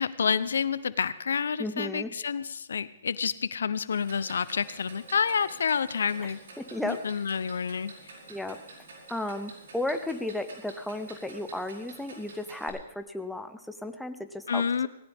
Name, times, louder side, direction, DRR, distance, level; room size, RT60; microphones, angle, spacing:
voice 1, 0.0-6.4 6.8-7.9 14.5-14.9, left 6 dB, 90° left, 16 dB, 0.7 m, -29 dB
voice 2, 1.6-2.1 6.2-7.0 8.3-8.6 9.1-14.9, left 1 dB, ahead, 7 dB, 0.9 m, -34 dB
Clock, 3.9-12.7, right 3 dB, 75° right, 5.8 m, -49 dB
18.0 x 17.0 x 3.6 m, 0.87 s
hypercardioid pair, 150°, 0 cm